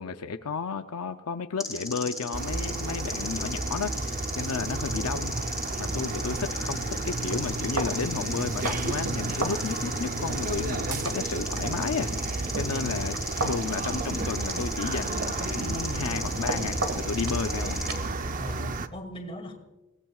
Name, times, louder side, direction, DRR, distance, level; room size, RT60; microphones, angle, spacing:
voice 1, 0.0-5.4 5.8-12.1 12.6-17.8, left 5 dB, 85° left, 8 dB, 0.6 m, -33 dB
sound 1, 1.6-18.0, left 1 dB, ahead, 4.7 m, -36 dB
sound 2, 2.3-18.9, right 3 dB, 35° right, 0.6 m, -32 dB
sound 3, 5.9-18.7, right 2 dB, 70° right, 1.7 m, -37 dB
voice 2, 18.4-19.5, equal, 25° left, 3 dB, 2.3 m, -39 dB
24.0 x 18.0 x 2.4 m, 1.1 s
head